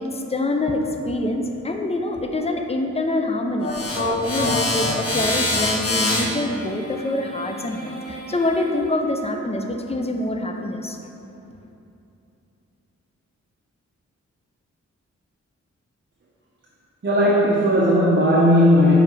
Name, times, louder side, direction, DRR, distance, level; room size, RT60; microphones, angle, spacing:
voice 1, 0.0-3.7 4.0-11.0, left 1 dB, 20° left, 4 dB, 0.4 m, -25 dB
sound 1, 3.6-8.8, left 2 dB, 55° left, 1.2 m, -26 dB
voice 2, 17.0-19.0, equal, 40° right, -6 dB, 0.9 m, -16 dB
6.6 x 4.8 x 3.2 m, 2.8 s
wide cardioid pair, 85°, 29 cm